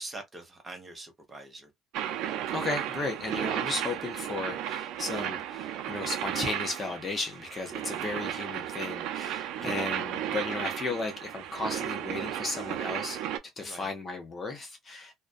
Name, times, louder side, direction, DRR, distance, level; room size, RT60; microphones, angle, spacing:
voice 1, 0.0-1.7 9.5-9.8 13.6-13.9, right 2 dB, 20° right, 0.8 m, -43 dB
sound 1, 1.9-13.4, right 10 dB, 80° right, 0.4 m, -34 dB
voice 2, 2.5-13.2 13.6-15.1, left 3 dB, 25° left, 0.7 m, -35 dB
2.4 x 2.1 x 2.4 m
cardioid pair, 150°, 0 cm